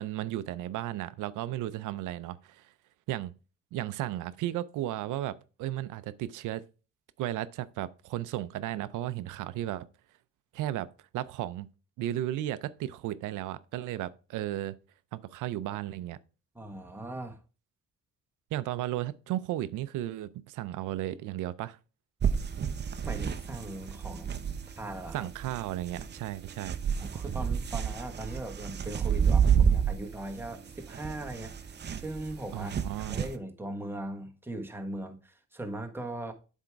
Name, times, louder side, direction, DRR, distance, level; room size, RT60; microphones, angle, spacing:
voice 1, 0.0-2.7 3.1-3.3 3.7-6.6 7.2-9.9 10.5-10.9 11.1-11.7 12.0-14.8 15.1-16.2 18.5-21.8 25.1-26.8 32.5-33.2, right 13 dB, 85° right, 0.5 m, -34 dB
voice 2, 16.5-17.4 23.0-24.4 24.8-25.3 27.0-32.7 33.1-36.3, right 1 dB, 5° right, 1.2 m, -39 dB
sound 1, 22.2-33.4, right 7 dB, 35° right, 0.6 m, -30 dB
7.8 x 3.6 x 4.5 m
cardioid pair, 90°, 30 cm